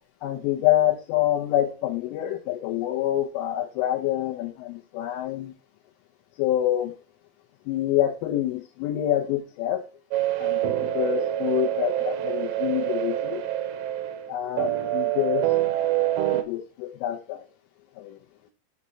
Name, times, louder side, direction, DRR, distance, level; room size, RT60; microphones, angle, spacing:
voice 1, 0.2-5.5 6.4-7.0 7.7-9.9 10.4-13.4 14.3-15.5 16.3-17.5 18.0-18.2, left 13 dB, 80° left, -1 dB, 3.3 m, -26 dB
sound 1, 10.1-16.4, right 13 dB, 80° right, 2.7 m, -26 dB
7.5 x 4.1 x 5.4 m, 0.33 s
omnidirectional pair, 5.8 m